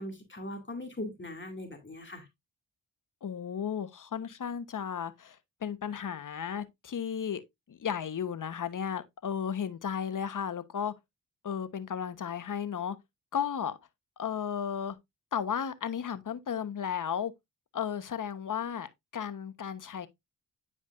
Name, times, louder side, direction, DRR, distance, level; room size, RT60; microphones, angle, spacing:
voice 1, 0.0-2.3, left 1 dB, 30° left, 2.3 m, -40 dB
voice 2, 3.2-5.4 5.6-7.4 7.7-10.9 11.4-13.0 13.3-13.8 14.2-15.0 15.3-17.3 17.7-20.1, left 8 dB, 55° left, 1.1 m, -34 dB
9.8 x 4.9 x 2.5 m
supercardioid pair, 45°, 37 cm